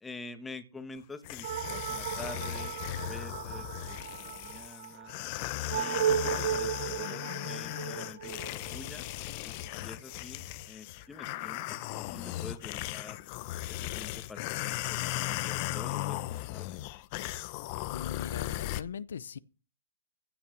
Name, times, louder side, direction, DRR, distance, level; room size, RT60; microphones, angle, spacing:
voice 1, 0.0-5.1 5.7-9.0 9.4-13.2 13.7-16.8, left 3 dB, 10° left, 1.5 m, -47 dB
sound 1, 1.2-18.8, left 16 dB, 35° left, 0.8 m, -37 dB
sound 2, 1.4-10.3, right 9 dB, 50° right, 0.7 m, -36 dB
voice 2, 17.9-19.4, left 7 dB, 80° left, 0.7 m, -40 dB
16.0 x 5.9 x 7.3 m
hypercardioid pair, 155°, 0 cm